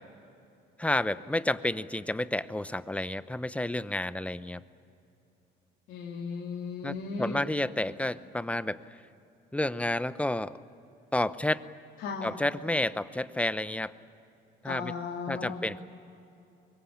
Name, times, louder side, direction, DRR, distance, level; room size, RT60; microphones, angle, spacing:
voice 1, 0.8-4.6 6.8-8.8 9.5-10.5 11.1-11.6 12.2-13.9 14.6-14.9 15.3-15.8, left 1 dB, 5° left, 14 dB, 0.8 m, -30 dB
voice 2, 5.9-7.5 12.0-12.4 14.6-15.6, left 5 dB, 90° left, -2 dB, 2.5 m, -36 dB
24.5 x 22.0 x 8.7 m, 2.7 s
cardioid pair, 90°, 20 cm